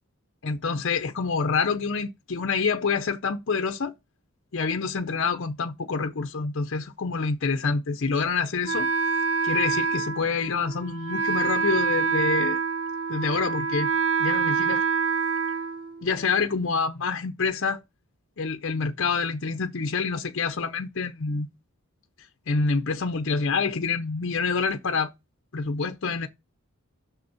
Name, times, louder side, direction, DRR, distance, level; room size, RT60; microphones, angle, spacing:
voice 1, 0.4-3.9 4.5-8.9 9.4-12.6 13.1-13.9 14.2-14.8 16.0-17.8 18.4-21.5 22.2-25.1 25.5-26.3, left 4 dB, 55° left, 0.6 m, -27 dB
Wind instrument woodwind instrument, 8.7-16.4, right 5 dB, 65° right, 0.7 m, -26 dB
6.3 x 5.2 x 6.9 m
head